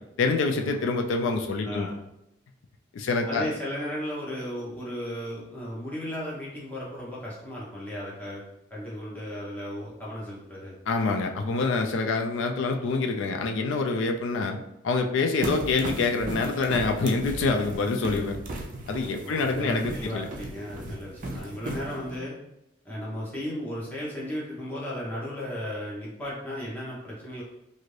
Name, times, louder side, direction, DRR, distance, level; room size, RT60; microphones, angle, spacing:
voice 1, 0.2-1.9 2.9-3.5 10.9-14.6 14.8-18.4 18.9-20.3 20.8-20.9, left 3 dB, 75° left, 4 dB, 0.3 m, -26 dB
voice 2, 1.6-2.1 3.3-8.4 8.7-10.8 19.2-22.3 22.8-27.4, equal, 10° left, -6 dB, 0.7 m, -35 dB
sound 1, 15.4-22.2, right 2 dB, 40° right, 0.4 m, -36 dB
2.6 x 2.5 x 3.1 m, 0.83 s
head